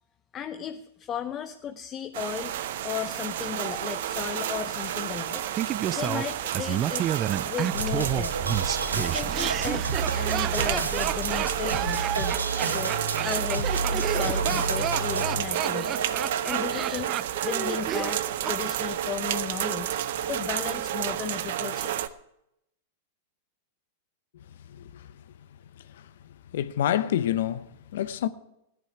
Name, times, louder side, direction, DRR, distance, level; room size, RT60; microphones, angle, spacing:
voice 1, 0.3-2.5 2.8-5.4 5.9-7.1 7.4-8.3 8.9-16.0 16.4-17.1 17.4-20.0 20.3-22.0, left 9 dB, 30° left, 0.6 m, -35 dB
sound 1, 2.1-22.1, right 11 dB, 65° right, 0.7 m, -31 dB
Laughter, 5.5-18.6 18.8-18.9, right 11 dB, 35° right, 0.4 m, -31 dB
sound 2, 7.7-17.9, right 3 dB, 90° right, 1.2 m, -31 dB
voice 2, 24.3-25.1 25.9-26.1 26.5-28.3, left 11 dB, 65° left, 0.8 m, -28 dB
16.5 x 11.0 x 4.7 m
hypercardioid pair, 100°, 0 cm